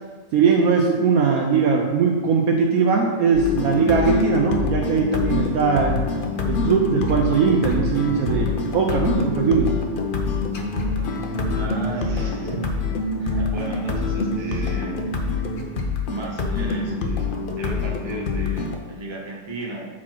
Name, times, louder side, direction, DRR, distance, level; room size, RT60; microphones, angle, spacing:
voice 1, 0.3-6.0 6.5-8.5 8.7-9.7, right 5 dB, 65° right, 1 dB, 1.0 m, -20 dB
sound 1, 3.3-18.8, left 3 dB, 60° left, 0.5 m, -25 dB
voice 2, 11.5-12.8 13.2-15.1 16.1-19.9, right 2 dB, 20° right, -4 dB, 1.0 m, -35 dB
7.3 x 4.2 x 4.5 m, 1.4 s
omnidirectional pair, 1.8 m